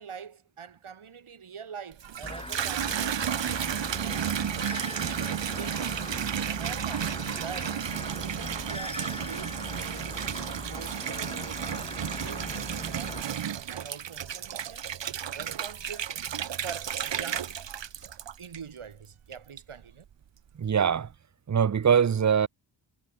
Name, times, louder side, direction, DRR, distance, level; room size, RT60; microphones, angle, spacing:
voice 1, 0.0-3.0 3.7-4.3 5.3-6.1 6.4-10.1 10.7-14.9 15.3-20.0, right 7 dB, 90° right, 3.3 m, -45 dB
Water tap faucet / Bathtub (filling or washing), 1.9-18.9 19.3-19.9, right 9 dB, 60° right, 0.9 m, -33 dB
sound 1, 2.2-13.2, left 2 dB, 10° left, 1.2 m, -40 dB
voice 2, 20.6-21.1 21.5-22.5, right 7 dB, 35° right, 0.6 m, -22 dB
wide cardioid pair, 110°, 49 cm